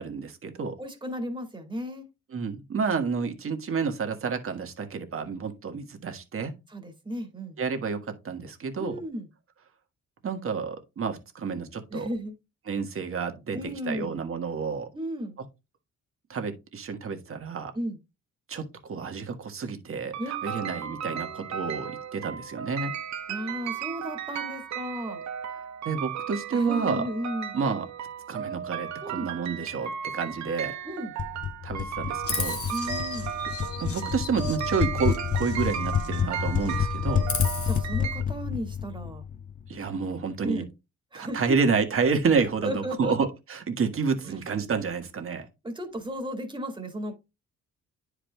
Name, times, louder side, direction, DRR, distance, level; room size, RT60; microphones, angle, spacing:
voice 1, 0.0-0.7 2.3-6.5 7.6-9.0 10.2-12.1 12.7-13.6 13.8-14.9 16.3-17.7 18.5-22.9 25.8-27.0 27.5-27.9 28.3-30.8 31.6-32.6 33.8-37.3 39.7-40.6 41.1-45.5, right 5 dB, 45° right, 1.6 m, -29 dB
voice 2, 0.8-2.0 6.7-7.6 8.8-9.3 11.9-12.3 13.5-14.2 14.9-15.4 17.7-18.0 20.2-20.4 23.3-25.2 26.5-27.5 29.0-29.3 30.8-31.1 32.7-33.4 36.8-36.9 37.6-39.2 40.4-40.7 41.1-41.4 42.6-43.2 45.6-47.1, equal, 15° right, 2.0 m, -34 dB
sound 1, 20.1-38.2, right 8 dB, 65° right, 1.0 m, -35 dB
sound 2, 31.2-39.8, left 8 dB, 30° left, 0.4 m, -29 dB
Chirp tweet, 32.2-36.3 36.6-37.8, left 5 dB, 50° left, 1.6 m, -36 dB
10.0 x 4.9 x 2.3 m
cardioid pair, 90°, 30 cm